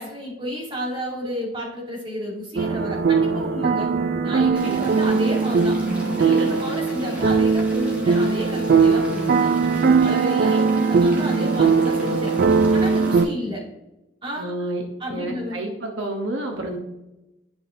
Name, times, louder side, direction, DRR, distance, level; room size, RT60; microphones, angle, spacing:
voice 1, 0.0-3.9 4.2-9.5 10.0-12.3 12.7-13.6 14.2-14.5 15.0-15.6, equal, 30° right, -5 dB, 2.4 m, -31 dB
sound 1, 2.6-13.3, right 5 dB, 55° right, 0.4 m, -20 dB
Rain, 4.5-13.2, equal, 10° right, 1.6 m, -42 dB
voice 2, 6.2-6.5 14.4-14.8 15.1-16.8, right 2 dB, 80° right, 2 dB, 1.0 m, -30 dB
11.0 x 5.3 x 2.6 m, 0.97 s
head